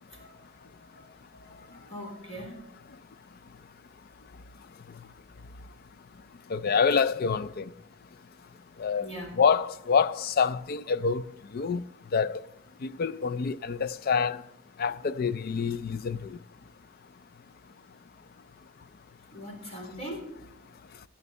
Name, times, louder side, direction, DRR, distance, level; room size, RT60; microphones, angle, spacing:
voice 1, 0.0-2.6 9.0-9.3 19.3-20.2, equal, 30° left, 3.9 m, -42 dB
voice 2, 6.5-7.7 8.8-9.1 9.4-11.2 11.5-12.4 12.8-14.4 14.8-16.4, left 6 dB, 45° left, 0.4 m, -26 dB
11.0 x 10.0 x 5.4 m
head